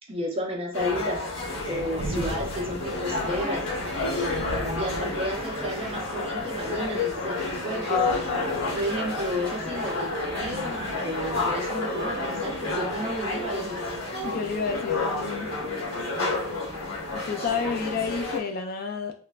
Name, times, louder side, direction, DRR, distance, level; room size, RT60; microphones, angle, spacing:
voice 1, 0.1-1.2 1.7-3.8 4.8-8.0 8.7-13.8, equal, 30° right, 0 dB, 0.6 m, -32 dB
sound 1, 0.7-18.4, left 3 dB, 75° left, 1.1 m, -30 dB
sound 2, 1.3-18.3, right 2 dB, 80° right, 0.4 m, -43 dB
sound 3, 2.9-3.8 5.5-6.1 7.6-8.1 9.6-10.0 11.3-11.9, right 1 dB, 5° left, 0.8 m, -41 dB
voice 2, 14.2-15.5 17.1-19.1, left 5 dB, 45° left, 5 dB, 0.3 m, -30 dB
3.1 x 2.1 x 2.3 m, 0.42 s
head